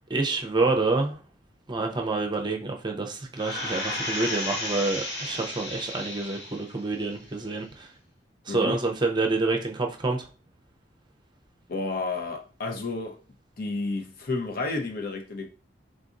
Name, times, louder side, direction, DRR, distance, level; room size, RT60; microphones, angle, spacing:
voice 1, 0.1-1.2 1.7-7.9 8.5-10.3, right 3 dB, 25° right, 0.6 m, -27 dB
sound 1, 3.4-6.8 7.2-7.3, left 1 dB, 75° left, 1.9 m, -33 dB
voice 2, 8.5-8.8 11.7-13.2 13.6-15.5, left 3 dB, 55° left, 0.7 m, -31 dB
4.0 x 3.7 x 2.5 m
head